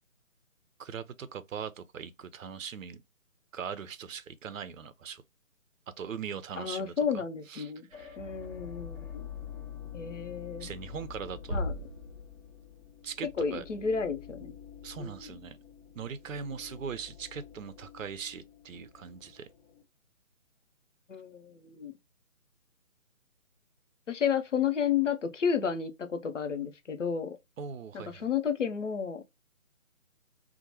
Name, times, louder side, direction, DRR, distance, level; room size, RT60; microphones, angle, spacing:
voice 1, 0.8-3.0 3.5-5.2 6.0-7.2 7.5-8.2 10.6-11.6 13.0-13.6 14.8-15.6 16.0-19.5 27.6-28.2, right 7 dB, 70° right, 0.5 m, -40 dB
voice 2, 6.6-7.9 8.2-9.3 9.9-10.7 11.5-11.7 13.4-14.5 15.0-15.3 21.1-21.9 24.1-27.4 27.9-29.2, left 7 dB, 60° left, 0.7 m, -32 dB
sound 1, 7.9-19.8, left 8 dB, 40° left, 1.1 m, -47 dB
sound 2, 11.5-13.1, left 1 dB, 20° right, 0.9 m, -37 dB
2.9 x 2.1 x 2.8 m
figure-of-eight pair, 150°, 41 cm